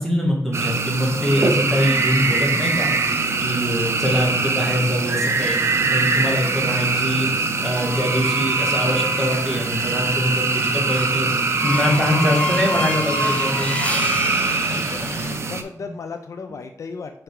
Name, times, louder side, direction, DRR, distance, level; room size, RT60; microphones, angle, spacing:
voice 1, 0.0-3.1 3.4-13.8 15.8-15.9, equal, 5° left, -2 dB, 1.7 m, -23 dB
sound 1, 0.5-15.6, right 4 dB, 50° right, 0.6 m, -23 dB
sound 2, 7.6-15.3, left 2 dB, 25° left, 0.8 m, -30 dB
voice 2, 14.5-17.2, left 5 dB, 60° left, 7 dB, 0.4 m, -36 dB
5.0 x 4.4 x 4.8 m, 0.72 s
wide cardioid pair, 135°, 6 cm